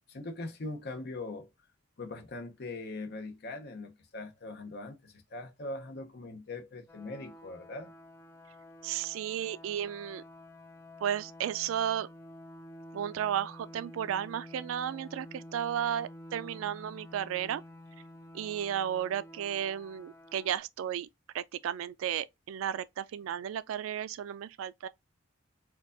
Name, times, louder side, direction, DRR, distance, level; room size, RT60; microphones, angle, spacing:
voice 1, 0.1-1.5 2.0-7.9, left 2 dB, 50° left, 0.7 m, -41 dB
sound 1, 6.9-20.6, left 1 dB, 15° left, 0.3 m, -50 dB
voice 2, 8.8-10.2 11.0-12.1 12.9-17.6 18.3-21.1 21.3-24.9, right 9 dB, 75° right, 0.3 m, -34 dB
4.4 x 2.3 x 2.5 m
head